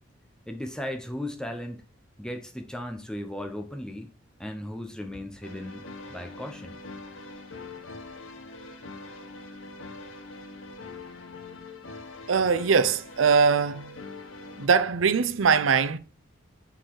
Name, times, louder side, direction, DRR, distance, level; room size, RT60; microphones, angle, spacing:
voice 1, 0.5-1.8 2.2-4.1 4.4-5.8 6.1-6.8, left 1 dB, 5° left, 0.9 m, -36 dB
sound 1, 5.4-14.7, left 3 dB, 90° left, 1.1 m, -43 dB
voice 2, 12.3-14.0 14.5-16.0, right 5 dB, 80° right, 0.6 m, -22 dB
6.4 x 4.1 x 4.7 m
head